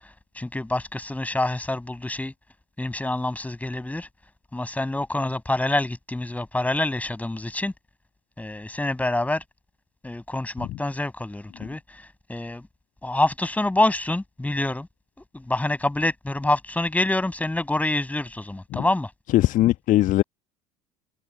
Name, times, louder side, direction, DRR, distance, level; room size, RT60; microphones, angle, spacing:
voice 1, 0.4-2.3 2.8-4.1 4.5-7.7 8.4-9.4 10.0-11.8 12.3-12.6 13.0-14.9 15.3-19.1, left 2 dB, 10° left, 7.0 m, -26 dB
voice 2, 19.3-20.2, left 15 dB, 45° left, 1.2 m, -20 dB
figure-of-eight pair, 65°, 19 cm